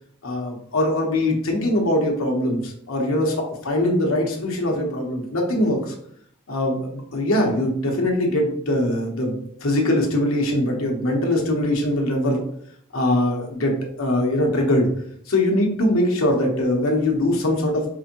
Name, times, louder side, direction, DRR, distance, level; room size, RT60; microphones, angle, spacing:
voice 1, 0.2-5.9 6.5-12.4 12.9-13.7 14.0-14.9 15.3-17.8, left 1 dB, 70° left, 0 dB, 1.0 m, -22 dB
4.8 x 2.6 x 2.9 m, 0.67 s
head